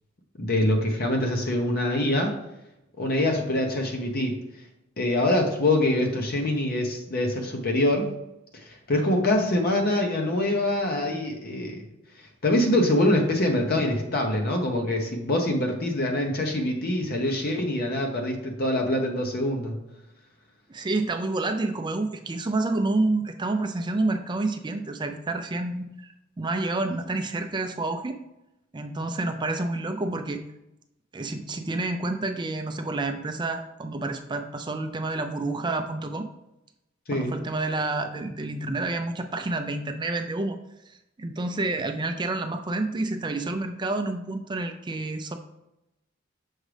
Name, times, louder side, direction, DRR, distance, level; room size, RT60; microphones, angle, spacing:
voice 1, 0.4-2.3 3.0-4.4 5.0-8.1 8.6-11.8 12.4-19.8 37.1-37.3, left 1 dB, 50° left, 3 dB, 0.8 m, -24 dB
voice 2, 20.7-28.2 28.7-30.4 31.1-36.3 37.1-40.6 40.9-45.3, right 2 dB, 25° right, 6 dB, 0.4 m, -29 dB
6.3 x 4.9 x 3.3 m, 0.89 s
head